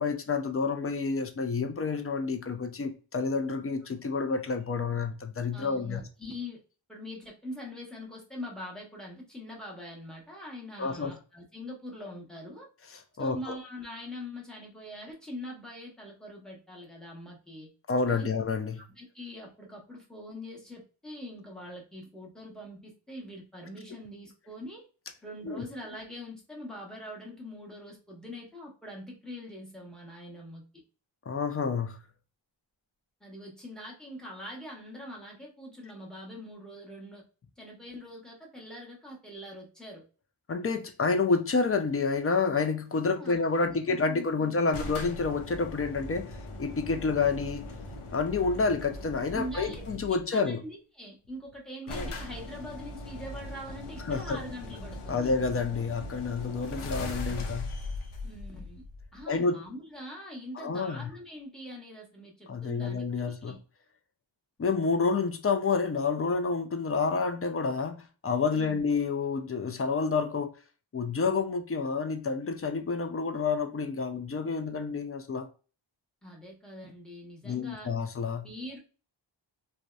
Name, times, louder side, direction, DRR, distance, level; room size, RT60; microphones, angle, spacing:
voice 1, 0.0-6.0 10.8-11.1 12.9-13.6 17.9-18.7 25.5-25.6 31.3-32.0 40.5-46.3 46.6-47.7 48.1-50.6 51.9-52.1 54.1-54.4 55.1-57.7 59.3-59.5 60.6-61.1 62.5-63.6 64.6-70.5 70.9-75.5 77.4-78.5, left 4 dB, 30° left, 0.4 m, -29 dB
voice 2, 5.5-6.6 6.9-12.7 13.2-17.7 18.0-18.3 18.9-24.8 25.2-30.6 33.2-37.2 37.6-40.0 43.0-44.6 49.3-55.3 58.2-58.8 59.1-63.6 68.5-68.8 76.2-77.9 78.4-78.8, left 1 dB, ahead, 0.9 m, -43 dB
sound 1, 44.7-50.2 51.2-51.3 51.5-51.6 51.9-59.4, left 2 dB, 85° left, 0.6 m, -40 dB
2.7 x 2.1 x 2.3 m
wide cardioid pair, 70°, 48 cm